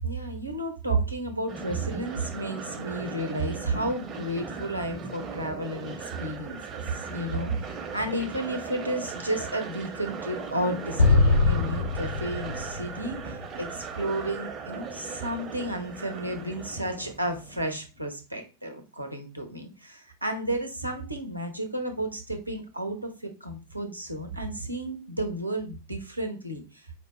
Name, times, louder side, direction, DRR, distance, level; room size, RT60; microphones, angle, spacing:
voice 1, 0.0-26.8, right 1 dB, 85° right, 5 dB, 0.8 m, -32 dB
sound 1, 1.5-17.8, right 5 dB, 30° right, 0.7 m, -38 dB
Explosion, 11.0-14.3, left 3 dB, 90° left, 1.9 m, -24 dB
4.7 x 2.2 x 3.1 m, 0.32 s
figure-of-eight pair, 90°, 0 cm